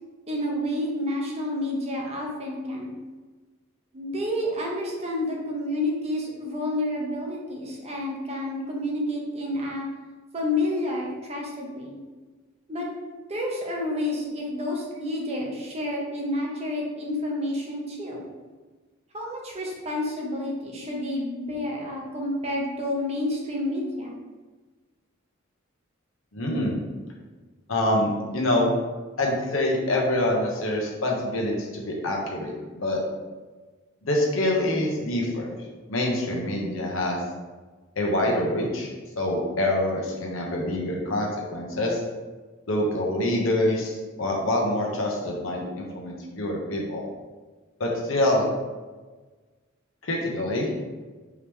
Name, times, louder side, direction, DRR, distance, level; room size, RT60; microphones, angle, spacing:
voice 1, 0.3-2.9 3.9-9.9 10.3-12.0 12.7-18.2 19.1-24.1, left 1 dB, 30° right, -2 dB, 0.9 m, -29 dB
voice 2, 26.3-26.7 27.7-28.7 29.2-33.0 34.0-35.5 35.9-37.2 38.0-38.9 39.2-42.0 42.7-47.0 47.8-48.5 50.0-50.7, left 1 dB, 75° left, -2 dB, 1.0 m, -25 dB
4.7 x 3.0 x 3.5 m, 1.3 s
head